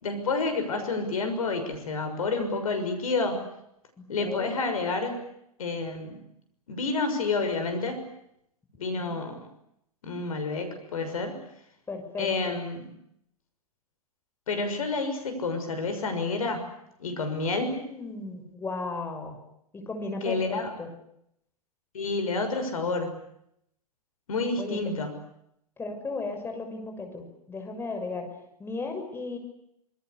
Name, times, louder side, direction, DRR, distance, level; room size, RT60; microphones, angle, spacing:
voice 1, 0.0-3.4 4.1-5.1 5.6-6.2 6.7-8.0 8.8-9.5 10.0-11.4 12.2-12.9 14.5-16.6 17.0-17.8 20.2-20.7 21.9-23.2 24.3-25.2, left 3 dB, 65° left, 7 dB, 6.4 m, -29 dB
voice 2, 4.0-4.5 8.9-9.2 11.9-12.5 17.6-19.3 19.7-20.9 24.6-24.9 25.8-28.3 28.6-29.4, left 3 dB, 10° left, 5 dB, 6.6 m, -35 dB
26.5 x 24.0 x 8.4 m, 0.77 s
figure-of-eight pair, 105°, 19 cm